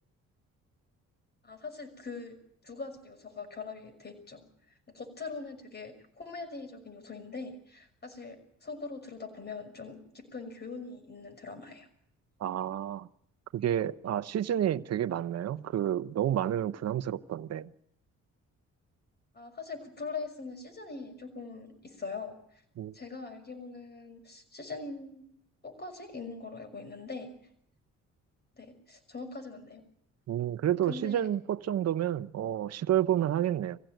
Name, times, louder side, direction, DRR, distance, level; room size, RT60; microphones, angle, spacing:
voice 1, 1.4-2.4 2.6-4.4 4.9-11.9 19.3-22.3 22.9-25.2 25.6-27.5 28.5-29.8 30.6-31.3, left 4 dB, 35° left, 6.0 m, -42 dB
voice 2, 12.4-13.1 13.5-17.7 22.8-22.9 30.3-33.8, right 11 dB, 60° right, 0.9 m, -30 dB
23.0 x 16.0 x 9.2 m
cardioid pair, 90°, 30 cm